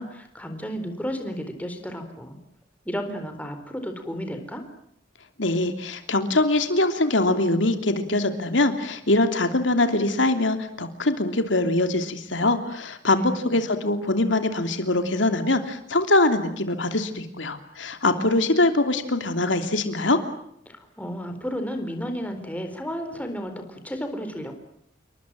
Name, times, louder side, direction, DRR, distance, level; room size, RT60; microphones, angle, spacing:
voice 1, 0.0-2.4 2.9-4.6 13.2-13.6 20.7-24.5, equal, 10° left, 6 dB, 4.3 m, -33 dB
voice 2, 5.4-20.2, left 2 dB, 85° left, 7 dB, 3.0 m, -23 dB
29.0 x 23.5 x 7.7 m, 0.73 s
head